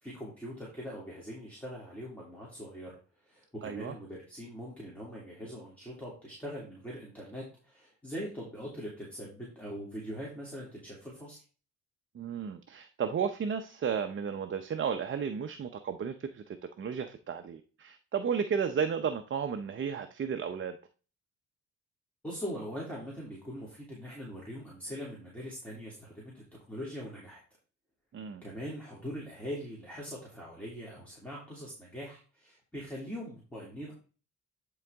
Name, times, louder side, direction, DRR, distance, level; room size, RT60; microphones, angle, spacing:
voice 1, 0.0-3.0 3.2-11.4 22.2-27.4 28.4-33.9, equal, 5° left, -5 dB, 2.8 m, -42 dB
voice 2, 3.6-3.9 12.1-20.8 28.1-28.4, right 7 dB, 40° right, 7 dB, 0.7 m, -33 dB
10.5 x 4.0 x 3.5 m, 0.36 s
cardioid pair, 90°, 30 cm